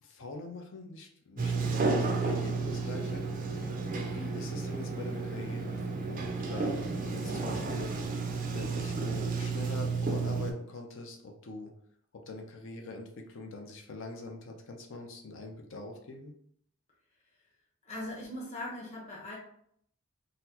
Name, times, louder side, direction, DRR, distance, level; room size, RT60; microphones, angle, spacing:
voice 1, 0.0-3.6 3.9-7.9 8.5-11.7 12.1-16.3, left 2 dB, 55° left, 2 dB, 0.5 m, -44 dB
Sliding door, 1.4-10.5, right 4 dB, 35° right, 0.4 m, -32 dB
voice 2, 17.8-19.4, left 1 dB, 30° left, -4 dB, 0.9 m, -40 dB
3.9 x 2.0 x 2.8 m, 0.68 s
head